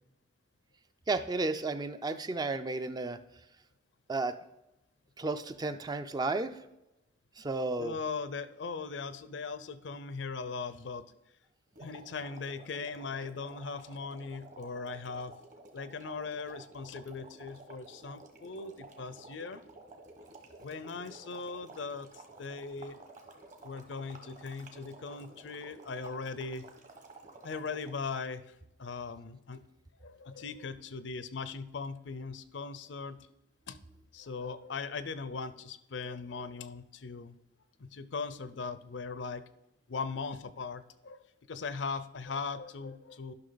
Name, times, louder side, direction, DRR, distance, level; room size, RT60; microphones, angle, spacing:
voice 1, 1.1-3.2 4.1-4.3 5.2-6.5 7.4-8.0, right 3 dB, 20° right, 10 dB, 0.4 m, -33 dB
voice 2, 7.8-11.0 11.8-15.3 15.7-19.6 20.6-23.0 23.6-26.7 27.4-29.6 30.0-33.2 33.7-33.8 34.1-37.4 37.8-39.4 39.9-43.3, left 4 dB, 70° left, 14 dB, 0.6 m, -39 dB
sound 1, 11.7-28.2, right 3 dB, 40° right, 1.3 m, -52 dB
11.5 x 5.9 x 3.9 m, 0.90 s
head